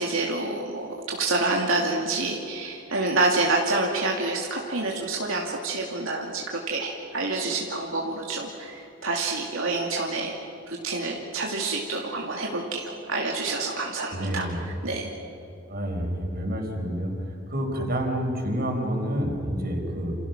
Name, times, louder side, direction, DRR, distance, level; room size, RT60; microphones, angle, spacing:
voice 1, 0.0-10.4 10.7-15.1, right 3 dB, 80° right, -1 dB, 2.7 m, -28 dB
voice 2, 14.1-14.6 15.7-17.1 17.5-20.2, equal, 50° right, 1 dB, 5.3 m, -28 dB
29.0 x 29.0 x 6.1 m, 2.8 s
head